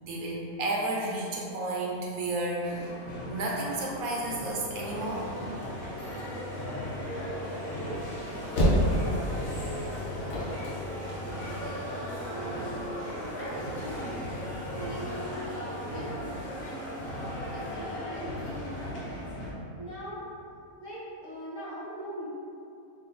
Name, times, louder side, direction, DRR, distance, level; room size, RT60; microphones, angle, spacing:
voice 1, 0.0-2.9 3.3-5.2, right 2 dB, 75° right, -3 dB, 1.1 m, -32 dB
sound 1, 2.6-19.5, left 1 dB, 90° left, 1.2 m, -40 dB
sound 2, 4.7-18.9, equal, 10° left, 0.7 m, -38 dB
sound 3, 8.5-12.0, equal, 70° left, 1.1 m, -27 dB
voice 2, 12.3-13.0 13.3-14.1 14.7-17.0 17.5-19.3 19.8-20.3 20.8-22.3, equal, 40° left, -10 dB, 0.9 m, -41 dB
3.3 x 2.6 x 3.7 m, 2.5 s
omnidirectional pair, 1.5 m